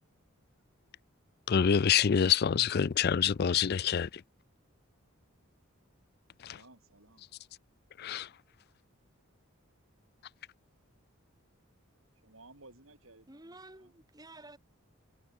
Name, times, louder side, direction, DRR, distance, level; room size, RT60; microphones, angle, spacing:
voice 1, 1.5-4.1 6.4-6.5 8.0-8.3, left 8 dB, 45° left, 0.4 m, -26 dB
voice 2, 6.4-7.3 12.2-13.9, right 2 dB, 65° right, 7.8 m, -57 dB
voice 3, 13.3-14.6, right 2 dB, 15° right, 3.5 m, -51 dB
head